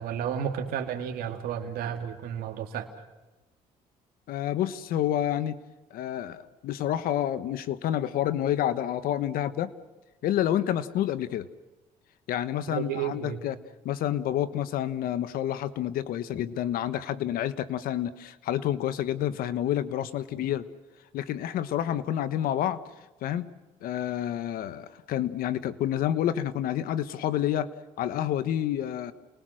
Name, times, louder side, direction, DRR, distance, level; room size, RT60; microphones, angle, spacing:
voice 1, 0.0-2.9 12.7-13.4, right 8 dB, 80° right, 3 dB, 2.2 m, -32 dB
voice 2, 4.3-5.6 5.9-9.7 10.2-11.5 12.3-13.6 13.8-20.6 21.1-22.8 23.2-23.5 23.8-27.7 28.0-29.1, left 11 dB, 75° left, 13 dB, 1.3 m, -29 dB
29.5 x 20.0 x 6.4 m, 1.1 s
cardioid pair, 85°, 15 cm